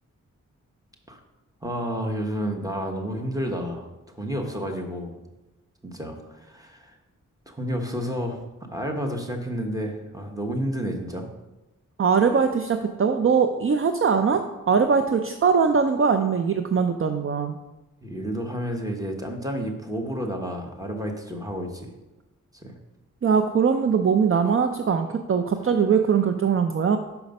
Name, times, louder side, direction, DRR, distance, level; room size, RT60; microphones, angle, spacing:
voice 1, 1.6-5.2 5.8-6.9 7.5-8.4 8.7-11.3 18.0-21.9 22.5-22.8, equal, 10° right, 2 dB, 1.1 m, -30 dB
voice 2, 12.0-17.6 23.2-27.0, right 6 dB, 45° right, 7 dB, 0.5 m, -21 dB
5.9 x 5.0 x 5.3 m, 1.0 s
wide cardioid pair, 70°, 31 cm